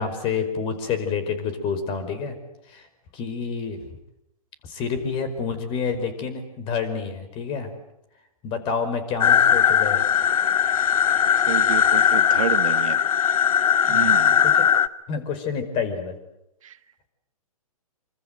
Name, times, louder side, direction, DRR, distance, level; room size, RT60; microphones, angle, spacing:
voice 1, 0.0-2.3 2.7-2.9 3.1-3.8 4.6-7.7 8.4-10.0 13.9-14.1 14.4-14.7 15.1-16.2, left 5 dB, 25° left, 10 dB, 5.1 m, -28 dB
sound 1, 9.2-14.9, left 8 dB, 70° left, 1.3 m, -19 dB
voice 2, 11.5-13.0 13.9-14.4 16.6-16.7, right 9 dB, 60° right, 11 dB, 1.6 m, -30 dB
26.5 x 26.0 x 8.1 m, 0.83 s
hypercardioid pair, 130°, 19 cm